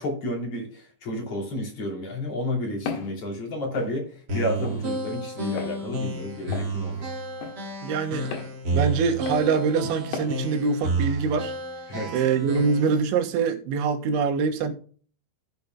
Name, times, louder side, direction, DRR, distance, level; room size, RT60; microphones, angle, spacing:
voice 1, 0.0-7.1 11.9-12.2, left 1 dB, 35° left, 3.3 m, -31 dB
Walk footsteps, 2.9-3.1 3.8-3.9 4.7-4.8 5.6-5.8 6.5-6.7 7.4-7.6 8.3-8.5 9.3-9.5 10.1-10.3, left 5 dB, 70° left, 3.6 m, -34 dB
sound 1, 4.3-13.0, right 2 dB, 40° right, 1.5 m, -30 dB
voice 2, 7.8-8.3 8.7-11.5 12.1-14.7, right 5 dB, 90° right, 3.6 m, -24 dB
15.5 x 6.6 x 2.3 m
omnidirectional pair, 5.2 m